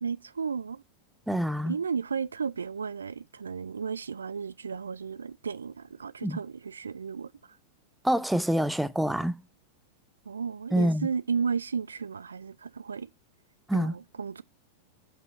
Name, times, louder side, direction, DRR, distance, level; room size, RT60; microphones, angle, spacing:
voice 1, 0.0-0.8 1.7-7.6 10.3-13.1 13.7-14.4, right 6 dB, 70° right, 0.3 m, -33 dB
voice 2, 1.3-1.7 6.2-6.4 8.0-9.4 10.7-11.1 13.7-13.9, right 1 dB, 5° right, 0.5 m, -26 dB
5.5 x 4.8 x 4.7 m
figure-of-eight pair, 90°, 0 cm